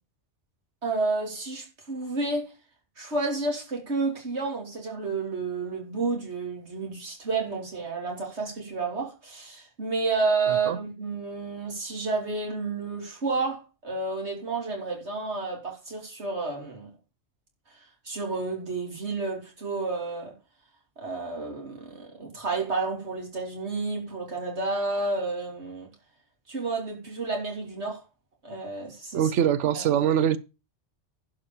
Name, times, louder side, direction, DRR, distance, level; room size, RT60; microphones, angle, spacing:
voice 1, 0.8-2.5 3.0-16.9 18.0-20.3 21.0-25.9 26.5-28.0 28.4-29.2 29.7-29.8, right 3 dB, 70° right, 3.4 m, -30 dB
voice 2, 29.1-30.4, right 9 dB, 90° right, 1.0 m, -23 dB
11.5 x 5.0 x 7.1 m
omnidirectional pair, 1.2 m